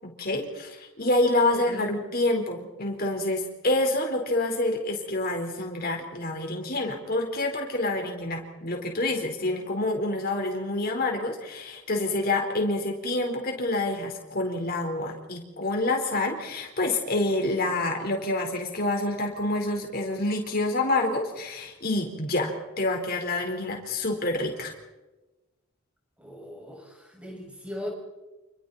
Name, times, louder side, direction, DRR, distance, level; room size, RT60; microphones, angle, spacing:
voice 1, 0.0-24.7, left 2 dB, 45° left, 2 dB, 4.6 m, -27 dB
voice 2, 1.5-2.0 26.2-27.9, left 1 dB, 5° right, -1 dB, 6.4 m, -39 dB
30.0 x 29.0 x 4.4 m, 1.1 s
head